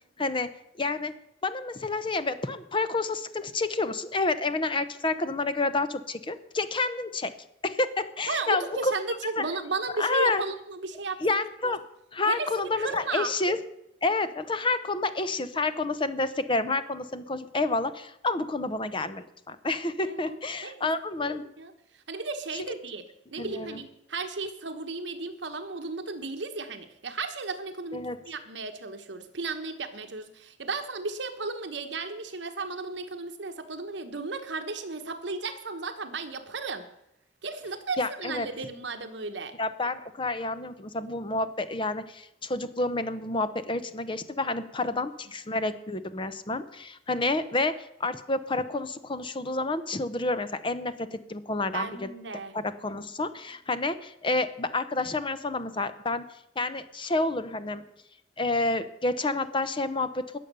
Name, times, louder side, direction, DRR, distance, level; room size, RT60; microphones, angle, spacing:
voice 1, 0.2-0.5 0.8-1.1 1.4-7.3 7.6-8.9 9.4-9.5 10.0-10.4 11.2-11.8 12.1-13.6 14.0-21.4 23.4-23.8 27.9-28.2 38.0-38.5 39.6-52.1 52.5-56.2 56.6-57.8 58.4-60.4, left 2 dB, 30° left, 12 dB, 0.8 m, -29 dB
voice 2, 8.3-11.2 11.6-11.7 12.3-13.3 20.1-20.4 20.6-20.9 21.2-21.7 22.1-23.1 23.3-36.9 37.4-39.6 51.7-52.5, right 3 dB, 75° right, 7 dB, 1.2 m, -34 dB
20.0 x 7.2 x 6.8 m, 0.81 s
head